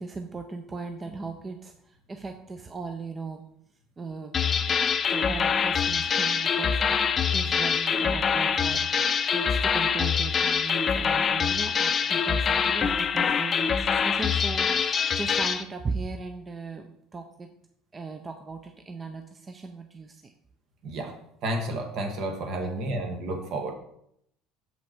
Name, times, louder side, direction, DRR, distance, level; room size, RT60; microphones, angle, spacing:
voice 1, 0.0-3.4 4.0-4.8 5.1-7.0 7.3-17.5 17.9-20.3 22.6-23.0, right 4 dB, 25° right, 5 dB, 0.6 m, -38 dB
sound 1, 4.3-15.6, left 6 dB, 35° left, 0.5 m, -25 dB
voice 2, 20.8-21.1 21.4-23.7, right 1 dB, 55° right, 4 dB, 1.6 m, -31 dB
6.6 x 5.5 x 4.4 m, 0.72 s
supercardioid pair, 110°, 0 cm